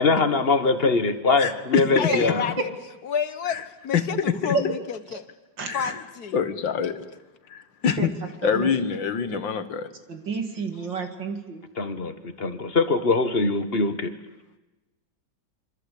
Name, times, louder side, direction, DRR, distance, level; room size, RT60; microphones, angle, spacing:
voice 1, 0.0-2.4 11.8-14.1, left 3 dB, 30° left, 10 dB, 1.5 m, -22 dB
voice 2, 1.4-1.8 3.5-3.6 3.9-4.6 5.7-6.0 6.3-7.0 7.5-8.1 8.4-9.9, left 7 dB, 70° left, 11 dB, 2.2 m, -25 dB
voice 3, 2.0-2.7 3.0-5.2 5.7-6.4 7.1-7.2, left 7 dB, 55° left, 12 dB, 1.7 m, -30 dB
voice 4, 5.6-5.9 7.9-8.1 8.4-8.7 9.3-9.4 10.1-11.6, right 5 dB, 65° right, 6 dB, 3.1 m, -30 dB
26.5 x 24.5 x 8.5 m, 1.1 s
omnidirectional pair, 2.1 m